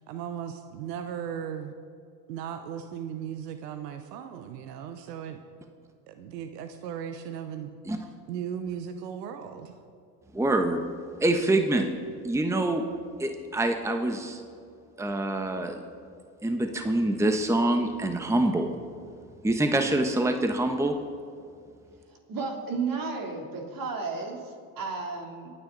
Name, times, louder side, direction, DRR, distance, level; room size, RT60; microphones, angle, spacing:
voice 1, 0.1-1.7 2.3-5.4 6.1-7.8 8.3-9.8, right 8 dB, 90° right, 8 dB, 1.0 m, -37 dB
voice 2, 10.3-10.8 11.2-11.9 12.2-12.8 13.2-14.4 15.0-15.8 16.4-18.7 19.4-20.9, right 1 dB, 5° right, 5 dB, 1.1 m, -25 dB
voice 3, 22.3-25.5, right 4 dB, 45° right, 1 dB, 3.3 m, -33 dB
27.0 x 9.5 x 4.0 m, 2.4 s
supercardioid pair, 85°, 48 cm